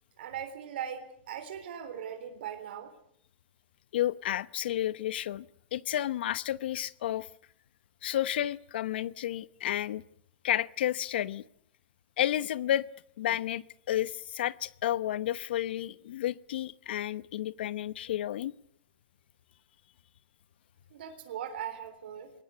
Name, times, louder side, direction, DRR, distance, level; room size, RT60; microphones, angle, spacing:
voice 1, 0.2-2.9 20.9-22.3, right 9 dB, 70° right, 7 dB, 3.8 m, -39 dB
voice 2, 3.9-5.4 5.7-7.3 8.0-10.0 10.4-11.4 12.2-12.9 13.2-18.5, left 12 dB, 70° left, 18 dB, 0.9 m, -31 dB
22.0 x 19.0 x 9.8 m, 0.68 s
supercardioid pair, 155°, 6 cm